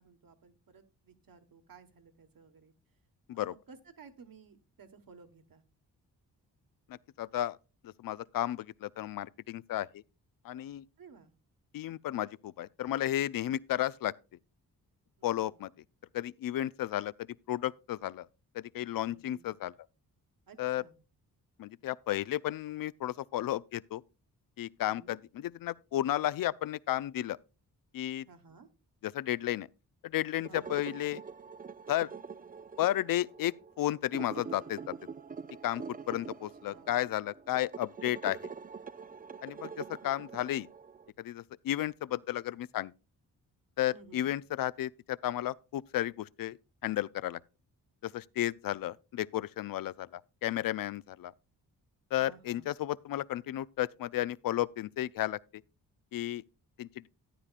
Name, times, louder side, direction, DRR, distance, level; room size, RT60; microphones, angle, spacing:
voice 1, 0.0-2.7 3.3-5.6 11.0-11.3 15.2-15.7 19.1-19.5 20.5-21.0 24.8-25.2 28.3-28.7 30.5-30.7 36.1-36.3 36.6-37.0 43.9-44.4 52.2-52.7, right 5 dB, 55° right, 1.5 m, -56 dB
voice 2, 7.2-7.6 7.8-10.0 10.4-10.8 11.7-14.1 15.2-15.7 16.1-18.3 18.5-19.7 20.6-20.8 21.6-24.0 24.6-27.4 27.9-28.2 29.0-29.7 30.0-31.2 31.9-32.1 32.8-34.9 35.6-38.5 39.4-40.7 41.2-42.9 43.8-46.6 46.8-47.4 48.0-51.3 52.1-55.4 56.1-56.4 56.8-57.1, left 13 dB, 55° left, 0.5 m, -33 dB
sound 1, 30.3-41.1, right 5 dB, 20° right, 0.4 m, -45 dB
13.0 x 9.6 x 2.4 m
supercardioid pair, 45°, 42 cm